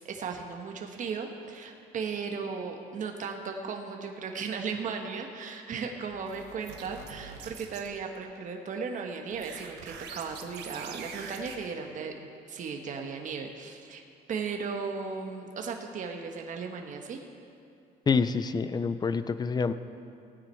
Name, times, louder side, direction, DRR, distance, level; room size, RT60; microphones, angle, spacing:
voice 1, 0.0-12.1 12.5-14.0 14.3-17.2, right 5 dB, 50° right, 3 dB, 1.3 m, -36 dB
sound 1, 6.1-7.9 9.3-11.6, right 6 dB, 80° right, 1.3 m, -44 dB
voice 2, 18.1-19.7, left 5 dB, 25° left, 12 dB, 0.5 m, -27 dB
17.0 x 9.4 x 4.5 m, 2.5 s
cardioid pair, 110°, 17 cm